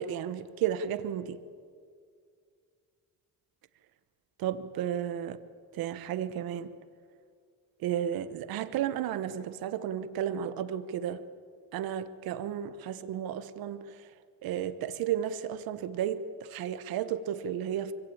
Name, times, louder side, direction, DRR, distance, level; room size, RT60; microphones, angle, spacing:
voice 1, 0.0-1.4 4.4-5.4 5.7-6.7 7.8-11.2 11.7-14.1 14.4-17.9, right 10 dB, 85° right, 12 dB, 1.1 m, -33 dB
24.5 x 16.5 x 8.7 m, 2.2 s
cardioid pair, 75°, 35 cm